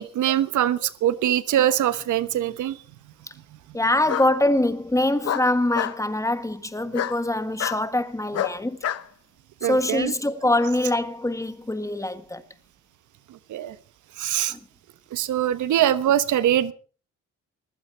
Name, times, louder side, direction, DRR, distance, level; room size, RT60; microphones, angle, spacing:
voice 1, 0.0-2.8 9.6-10.1 13.5-13.7 14.2-14.5 15.1-16.7, right 11 dB, 75° right, 1.2 m, -23 dB
Bark, 1.9-2.5 4.1-4.3 5.2-6.0 6.9-7.2 7.6-7.8 8.3-9.0, left 10 dB, 55° left, 1.0 m, -28 dB
voice 2, 3.7-8.8 9.6-12.4 14.5-14.6, left 1 dB, 10° left, 1.6 m, -24 dB
20.5 x 15.5 x 4.6 m
cardioid pair, 90°, 30 cm